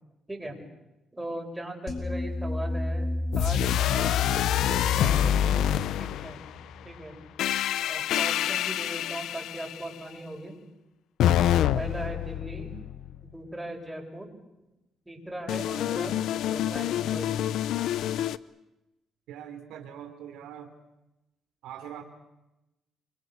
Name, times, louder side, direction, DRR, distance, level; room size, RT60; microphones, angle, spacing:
voice 1, 0.3-0.6 1.1-3.1 3.3-4.2 4.7-5.7 6.0-6.4 6.8-7.2 7.9-10.5 11.5-12.7 13.2-14.3 15.1-17.3, right 1 dB, 10° right, 1 dB, 7.9 m, -39 dB
sound 1, 1.9-7.1, left 1 dB, 55° left, 6.5 m, -34 dB
sound 2, 3.3-6.6 7.4-9.9 11.2-13.3 15.5-18.4, left 11 dB, 80° left, 0.8 m, -26 dB
voice 2, 19.3-20.8 21.6-22.0, right 9 dB, 90° right, 5 dB, 3.5 m, -42 dB
28.0 x 24.5 x 6.8 m, 0.95 s
cardioid pair, 90°, 0 cm